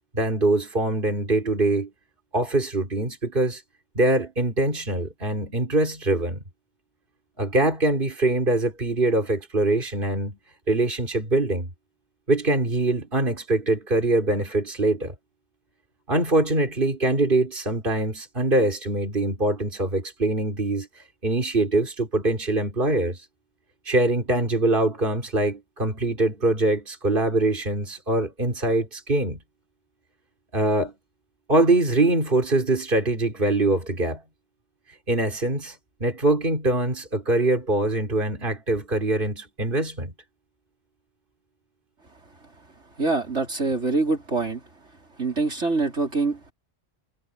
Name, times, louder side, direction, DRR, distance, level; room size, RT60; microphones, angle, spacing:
voice 1, 0.1-1.9 2.3-3.6 4.0-6.4 7.4-10.4 10.7-11.7 12.3-15.1 16.1-20.9 21.2-23.2 23.9-29.4 30.5-30.9 31.5-34.2 35.1-35.8 36.0-40.1, right 2 dB, 45° right, 4.2 m, -23 dB
voice 2, 43.0-44.6 45.2-46.5, right 3 dB, 70° right, 4.6 m, -25 dB
omnidirectional pair, 1.2 m